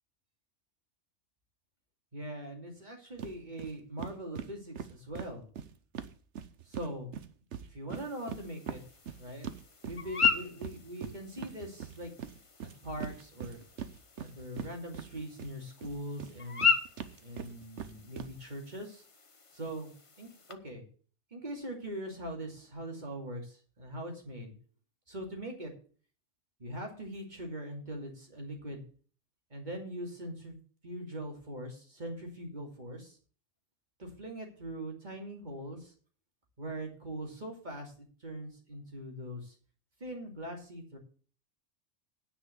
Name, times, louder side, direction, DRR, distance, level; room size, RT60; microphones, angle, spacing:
voice 1, 2.1-5.4 6.6-7.1 7.7-8.8 9.2-9.5 9.8-12.1 12.8-13.6 14.2-16.7 17.2-19.0 19.5-19.9 20.2-20.8 21.3-24.5 25.1-25.7 26.6-28.8 29.5-30.6 30.8-33.2 34.0-35.9 36.6-39.6 40.0-41.0, right 1 dB, 40° right, 2 dB, 2.7 m, -41 dB
sound 1, 3.2-3.3 3.6-3.7 4.0-6.9 7.1-15.5 15.8-18.3, right 8 dB, 75° right, 1.1 m, -41 dB
sound 2, 7.9-20.5, left 6 dB, 30° left, 0.9 m, -37 dB
9.8 x 5.5 x 8.1 m, 0.41 s
omnidirectional pair, 1.2 m